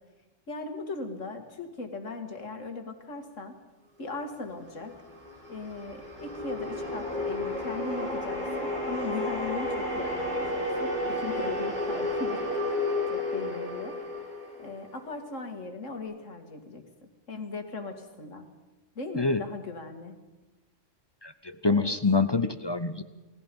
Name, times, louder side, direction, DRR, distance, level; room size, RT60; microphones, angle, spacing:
voice 1, 0.5-3.6 4.0-4.9 5.5-12.8 13.1-14.0 14.6-18.5 19.0-20.2 21.7-22.0, left 3 dB, 80° left, 5 dB, 2.5 m, -38 dB
sound 1, 4.8-15.1, left 2 dB, 35° right, 4.5 m, -32 dB
voice 2, 21.2-23.0, left 4 dB, 25° left, 12 dB, 0.6 m, -26 dB
29.5 x 19.0 x 5.4 m, 1.1 s
omnidirectional pair, 1.3 m